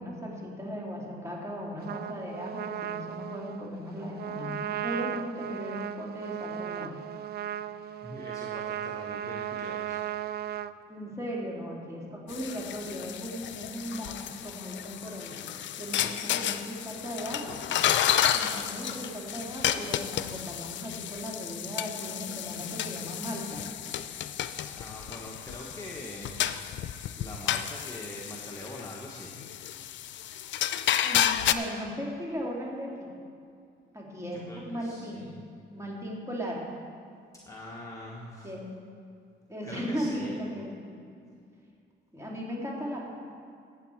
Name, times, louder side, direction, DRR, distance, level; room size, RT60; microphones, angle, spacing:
voice 1, 0.0-7.0 10.9-17.6 18.3-23.6 31.0-33.1 33.9-35.3 35.7-36.7 38.4-38.7 39.5-40.9 42.1-43.0, equal, 15° right, -3 dB, 2.9 m, -37 dB
Trumpet, 1.8-10.7, right 11 dB, 55° right, 0.4 m, -36 dB
voice 2, 8.0-10.0 24.8-26.4 27.2-29.4 34.3-35.4 37.5-38.5 39.6-40.3, left 1 dB, 15° left, -3 dB, 1.3 m, -43 dB
sound 1, 12.3-31.5, left 11 dB, 70° left, 0.5 m, -31 dB
14.5 x 8.4 x 4.6 m, 2.4 s
cardioid pair, 90°, 20 cm